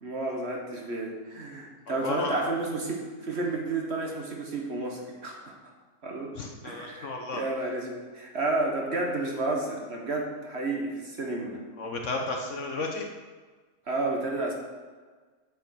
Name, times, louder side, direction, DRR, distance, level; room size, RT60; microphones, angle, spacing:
voice 1, 0.0-5.6 6.0-6.3 6.6-11.6 13.9-14.5, right 2 dB, 45° right, 0 dB, 1.3 m, -31 dB
voice 2, 1.9-2.4 6.4-7.4 11.8-13.1, left 3 dB, 55° left, 2 dB, 1.0 m, -33 dB
7.9 x 5.0 x 6.2 m, 1.4 s
omnidirectional pair, 1.7 m